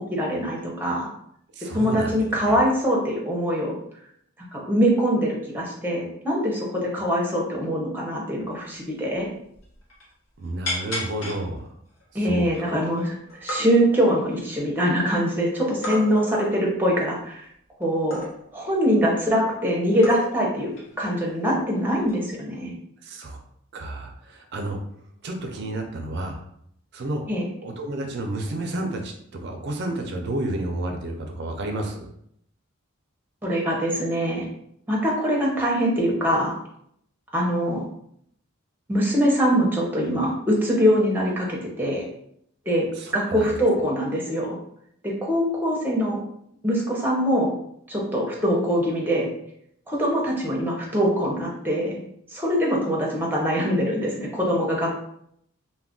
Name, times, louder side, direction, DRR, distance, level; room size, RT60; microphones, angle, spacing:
voice 1, 0.1-1.1 1.7-3.7 4.5-9.3 12.1-17.5 17.8-18.2 18.5-22.7 27.3-27.4 33.4-34.4 34.9-36.5 37.3-37.8 38.9-42.1 42.7-42.9 43.1-44.6 45.2-46.2 46.6-47.5 47.9-49.3 49.9-52.0 52.3-55.0, equal, 10° right, -3 dB, 0.6 m, -23 dB
voice 2, 1.6-2.6 10.4-11.7 12.1-12.5 23.0-23.4 23.7-24.8 25.2-26.4 26.9-27.3 27.6-32.1 42.9-43.5, right 1 dB, 50° right, 3 dB, 0.4 m, -31 dB
sound 1, 8.7-8.8 9.1-9.3 9.5-10.1 10.7-11.4 12.0-12.1 12.5-13.0 13.3-13.6 14.2-15.1 15.8-16.5 18.1-18.6 19.5-19.6 20.0-20.5 20.8-21.0 22.0-22.3, left 1 dB, 70° left, 0.9 m, -32 dB
2.3 x 2.1 x 3.6 m, 0.71 s
head